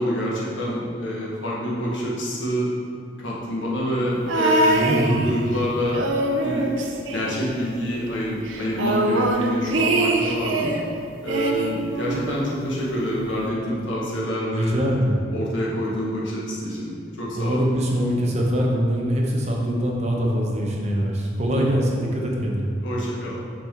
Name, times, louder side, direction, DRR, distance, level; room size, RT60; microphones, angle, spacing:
voice 1, 0.0-2.7 3.2-6.0 6.4-6.7 7.0-10.7 11.2-14.7 15.3-17.6 22.8-23.4, equal, 80° left, -5 dB, 1.5 m, -27 dB
sound 1, 4.3-5.6 5.9-7.8 8.1-8.2 8.5-10.8 11.3-12.5 13.4-13.5, right 2 dB, 90° right, 0.6 m, -23 dB
voice 2, 4.8-5.2 14.5-15.3 17.3-22.7, equal, 35° right, -1 dB, 0.9 m, -23 dB
6.1 x 4.6 x 4.4 m, 2.3 s
head